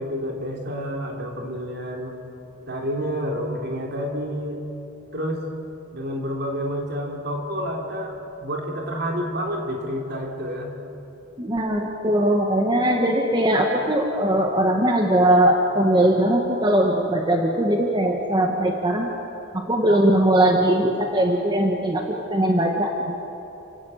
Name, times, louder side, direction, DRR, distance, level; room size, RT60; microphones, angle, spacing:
voice 1, 0.0-2.2 2.7-4.6 5.1-5.4 5.9-10.7, equal, 55° right, 1 dB, 3.7 m, -29 dB
voice 2, 11.4-19.1 19.5-23.3, right 1 dB, 25° right, 1 dB, 1.6 m, -20 dB
29.5 x 17.0 x 8.1 m, 2.9 s
head